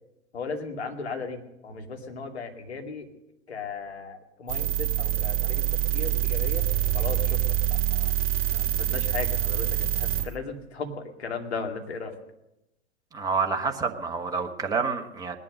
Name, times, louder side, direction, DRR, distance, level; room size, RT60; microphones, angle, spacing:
voice 1, 0.3-3.1 3.5-5.6 5.9-6.6 6.9-8.1 8.5-12.2, left 4 dB, 65° left, 4 dB, 2.6 m, -36 dB
sound 1, 4.5-10.3, right 12 dB, 25° right, 1.7 m, -26 dB
voice 2, 13.1-15.4, right 4 dB, 10° right, 4 dB, 1.3 m, -28 dB
19.5 x 11.0 x 6.6 m, 0.88 s
figure-of-eight pair, 100°, 34 cm